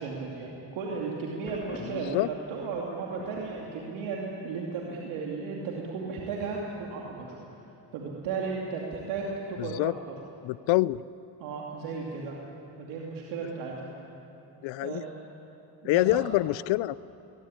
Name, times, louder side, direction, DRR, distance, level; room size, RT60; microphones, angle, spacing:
voice 1, 0.0-7.4 7.9-9.9 11.4-12.4 12.8-13.9 14.8-15.0 15.8-16.3, right 4 dB, 90° right, -2 dB, 2.7 m, -35 dB
Thunder, 1.5-4.5, left 2 dB, 25° left, 2.9 m, -47 dB
voice 2, 1.8-2.3 9.6-9.9 10.4-11.0 14.6-15.0 15.8-16.9, left 18 dB, 75° left, 20 dB, 0.5 m, -26 dB
21.0 x 20.0 x 9.9 m, 2.9 s
supercardioid pair, 80°, 46 cm